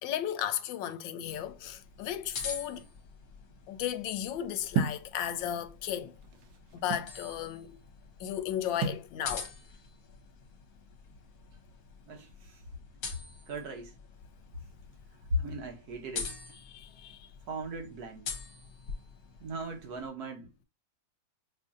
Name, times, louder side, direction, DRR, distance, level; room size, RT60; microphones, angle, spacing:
voice 1, 0.0-2.9 3.7-6.1 6.7-7.8 8.2-9.5 16.7-17.3, left 10 dB, 85° left, 1.3 m, -35 dB
sound 1, 1.2-20.1, left 5 dB, 60° left, 1.3 m, -45 dB
sound 2, 4.7-5.1 6.0-7.2 8.8-9.1, right 5 dB, 80° right, 1.5 m, -31 dB
voice 2, 12.0-12.6 13.5-13.9 15.3-16.4 17.5-18.3 19.4-20.6, equal, 60° right, 1.3 m, -37 dB
5.4 x 2.6 x 2.3 m
omnidirectional pair, 2.0 m